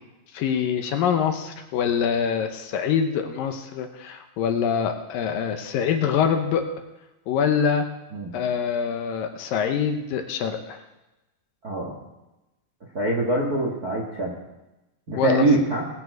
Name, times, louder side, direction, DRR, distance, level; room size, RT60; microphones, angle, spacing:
voice 1, 0.3-6.7 7.3-7.9 8.3-10.8 15.2-15.5, left 7 dB, 75° left, 6 dB, 2.4 m, -24 dB
voice 2, 12.9-14.3 15.1-15.8, right 2 dB, 45° right, -1 dB, 1.2 m, -23 dB
20.0 x 8.7 x 4.7 m, 1.0 s
omnidirectional pair, 4.4 m